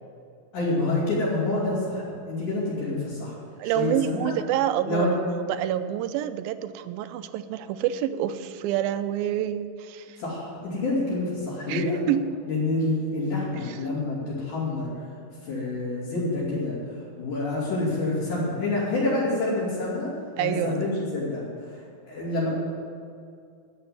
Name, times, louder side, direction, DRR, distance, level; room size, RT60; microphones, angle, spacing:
voice 1, 0.5-3.4 3.6-4.3 4.9-5.1 10.2-12.0 12.5-14.9 15.4-16.8 17.2-21.4 22.1-22.5, left 2 dB, 55° left, -10 dB, 4.5 m, -27 dB
voice 2, 3.6-5.1 5.5-10.2 11.7-12.3 13.6-13.8 20.4-20.8, right 11 dB, 85° right, 11 dB, 2.4 m, -27 dB
11.5 x 7.7 x 9.5 m, 2.4 s
omnidirectional pair, 4.2 m